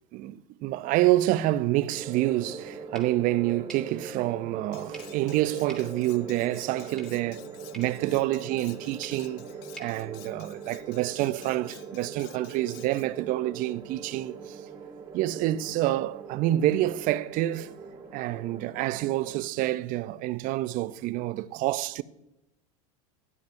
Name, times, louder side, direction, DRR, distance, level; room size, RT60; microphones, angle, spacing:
voice 1, 0.1-7.5 7.7-9.4 9.8-14.6 15.1-17.7 18.1-22.0, right 15 dB, 45° right, 0.5 m, -27 dB
sound 1, 1.9-19.4, right 5 dB, 25° right, 1.9 m, -42 dB
sound 2, 2.9-11.0, right 1 dB, 5° left, 2.9 m, -53 dB
Cutlery silverware, 4.7-13.1, left 14 dB, 60° left, 0.6 m, -52 dB
13.0 x 11.0 x 2.6 m
supercardioid pair, 110°, 19 cm